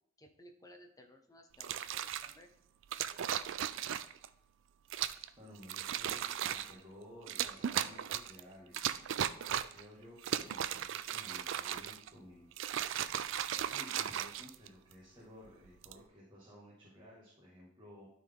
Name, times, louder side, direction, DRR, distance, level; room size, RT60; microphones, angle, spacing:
voice 1, 0.2-2.5, equal, 20° left, 4 dB, 0.9 m, -58 dB
sound 1, 1.5-2.3 2.9-4.3 4.9-5.3 5.6-6.7 7.3-8.4 8.7-9.8 10.2-12.1 12.5-14.9 15.6-16.0, right 10 dB, 75° right, 0.4 m, -36 dB
voice 2, 5.4-9.0 9.7-12.5 13.5-18.1, left 1 dB, 25° right, -7 dB, 1.9 m, -55 dB
12.0 x 4.1 x 3.7 m, 0.78 s
head